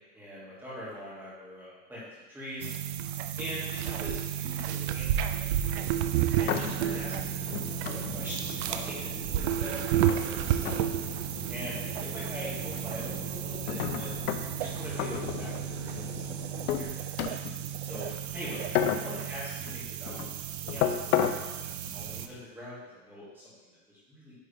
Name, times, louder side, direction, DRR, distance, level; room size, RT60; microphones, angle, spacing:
voice 1, 0.0-2.0 2.3-2.7 3.4-6.0 6.3-7.5 7.8-10.8 11.5-14.1 14.6-16.4 16.7-17.4 17.8-18.1 18.3-18.6 19.0-21.5 21.8-24.3, left 1 dB, 5° right, -9 dB, 2.1 m, -43 dB
sound 1, 2.6-22.3, right 11 dB, 50° right, 0.4 m, -32 dB
sound 2, 5.8-22.4, left 9 dB, 80° left, 0.7 m, -35 dB
Fixed-wing aircraft airplane, 6.7-16.9, left 8 dB, 50° left, 0.9 m, -45 dB
9.8 x 3.8 x 3.4 m, 1.2 s
supercardioid pair, 165°, 43 cm